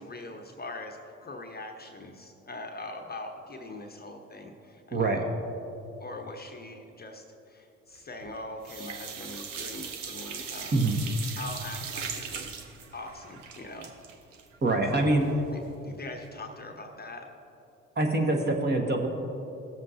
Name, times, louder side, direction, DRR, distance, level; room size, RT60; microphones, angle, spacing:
voice 1, 0.0-5.2 6.0-10.9 11.4-12.6 12.9-13.9 14.9-15.1 15.5-17.3, left 2 dB, 25° left, 4 dB, 0.9 m, -42 dB
sound 1, 8.0-8.4 8.6-15.5 15.8-15.9 16.2-16.3, right 6 dB, 85° right, 0.8 m, -40 dB
voice 2, 14.6-15.3 17.9-19.1, right 2 dB, 30° right, 1 dB, 1.5 m, -24 dB
17.0 x 7.4 x 2.8 m, 2.9 s
figure-of-eight pair, 50°, 36 cm